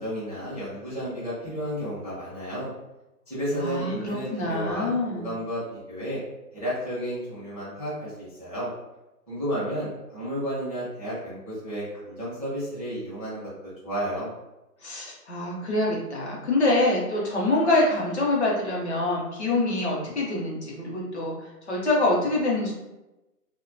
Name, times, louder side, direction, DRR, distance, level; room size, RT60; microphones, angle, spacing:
voice 1, 0.0-2.7 3.3-6.2 6.5-8.7 9.3-13.5 13.8-14.3, equal, 25° right, -9 dB, 0.4 m, -32 dB
voice 2, 3.6-5.3 14.8-22.7, left 2 dB, 45° left, -3 dB, 0.6 m, -25 dB
2.4 x 2.1 x 2.5 m, 0.99 s
hypercardioid pair, 160°, 48 cm